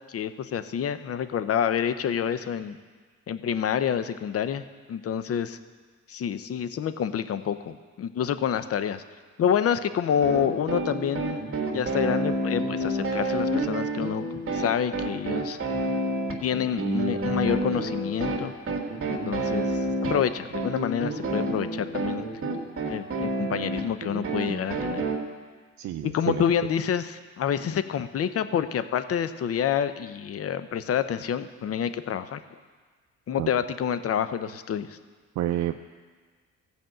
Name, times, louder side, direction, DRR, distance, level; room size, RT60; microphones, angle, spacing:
voice 1, 0.1-2.8 3.3-5.6 6.1-9.0 9.4-11.4 11.7-14.2 14.5-15.6 16.4-18.5 19.1-19.7 20.1-22.2 22.9-25.0 26.0-32.4 33.3-35.0, left 8 dB, 50° left, 12 dB, 0.7 m, -28 dB
sound 1, 10.2-25.2, right 2 dB, 45° right, 1.9 m, -29 dB
voice 2, 25.8-26.4 33.4-33.5 35.4-35.8, right 13 dB, 70° right, 6 dB, 0.5 m, -29 dB
15.0 x 5.3 x 7.7 m, 1.5 s
cardioid pair, 90°, 30 cm